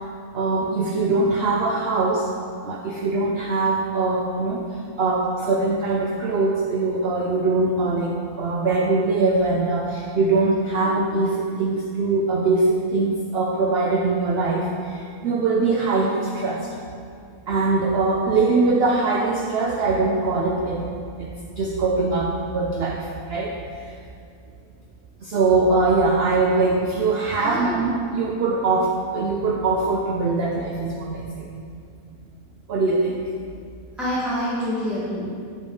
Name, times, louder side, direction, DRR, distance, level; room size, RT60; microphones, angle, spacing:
voice 1, 0.3-2.3 2.6-4.7 5.0-16.7 17.5-20.9 21.2-23.9 25.2-31.5 32.7-33.3, right 3 dB, 75° right, 0 dB, 0.5 m, -22 dB
voice 2, 27.4-27.8 34.0-35.4, equal, ahead, -10 dB, 1.2 m, -27 dB
7.5 x 5.2 x 3.8 m, 2.3 s
omnidirectional pair, 1.7 m